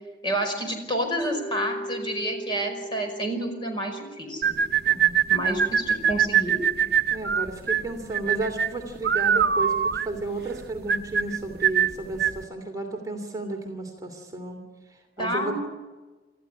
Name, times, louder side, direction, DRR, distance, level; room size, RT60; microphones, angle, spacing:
voice 1, 0.2-4.4 5.3-6.6 15.2-15.5, right 1 dB, 25° left, 3 dB, 5.3 m, -29 dB
Mallet percussion, 1.2-5.3, equal, ahead, 7.4 m, -39 dB
sound 1, 4.4-12.4, right 8 dB, 60° right, 0.7 m, -23 dB
voice 2, 7.1-15.5, right 2 dB, 20° right, 1 dB, 2.9 m, -33 dB
26.5 x 14.0 x 9.8 m, 1.3 s
head